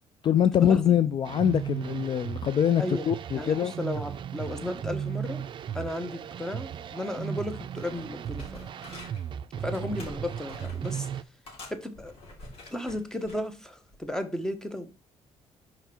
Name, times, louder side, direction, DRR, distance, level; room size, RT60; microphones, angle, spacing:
voice 1, 0.2-3.7, left 9 dB, 45° left, 0.4 m, -24 dB
sound 1, 1.3-11.2, right 8 dB, 50° right, 0.4 m, -36 dB
voice 2, 3.3-5.4 5.7-8.4 9.6-11.1 11.7-12.1 12.7-14.9, left 1 dB, 5° left, 1.0 m, -34 dB
sound 2, 7.8-9.3 9.7-11.1 11.5-13.4 13.9-14.1, left 2 dB, 65° left, 3.2 m, -47 dB
5.7 x 5.1 x 4.3 m
cardioid pair, 120°, 11 cm